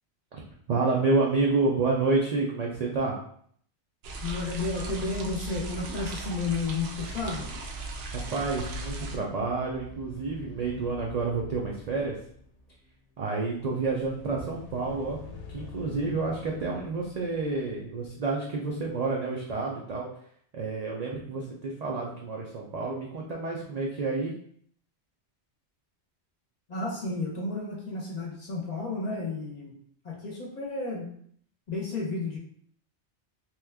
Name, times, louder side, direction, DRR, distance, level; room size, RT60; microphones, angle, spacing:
voice 1, 0.7-3.2 8.1-12.2 13.2-15.2 15.5-20.1 20.5-24.3, right 3 dB, 60° right, -2 dB, 0.4 m, -29 dB
sound 1, 4.0-9.2, right 2 dB, 75° right, 0.9 m, -37 dB
voice 2, 4.2-7.5 26.7-29.7 30.0-31.1 31.7-32.4, left 3 dB, 40° left, -3 dB, 0.7 m, -32 dB
sound 2, 8.9-19.1, left 3 dB, 90° left, 0.9 m, -47 dB
3.0 x 2.2 x 3.4 m, 0.63 s
omnidirectional pair, 1.2 m